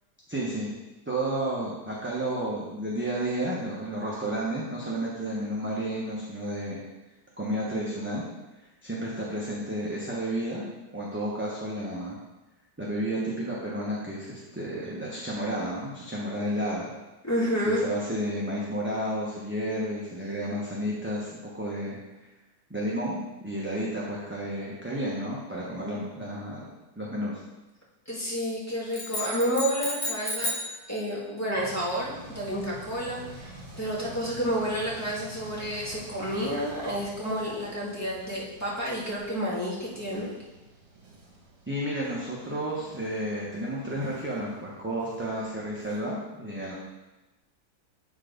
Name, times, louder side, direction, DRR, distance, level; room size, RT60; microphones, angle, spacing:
voice 1, 0.3-0.7 1.1-6.8 7.4-8.2 8.8-10.7 10.9-12.2 12.8-16.9 17.6-22.0 22.7-26.7 27.0-27.4 41.7-46.8, right 1 dB, 10° right, -6 dB, 0.9 m, -31 dB
voice 2, 17.2-17.8 28.1-30.5 30.9-40.3, equal, 10° left, -7 dB, 1.9 m, -30 dB
sound 1, 28.9-30.8, left 1 dB, 50° left, 1.5 m, -32 dB
sound 2, 31.5-46.0, right 2 dB, 60° right, 1.9 m, -48 dB
8.5 x 4.1 x 5.1 m, 1.1 s
omnidirectional pair, 1.6 m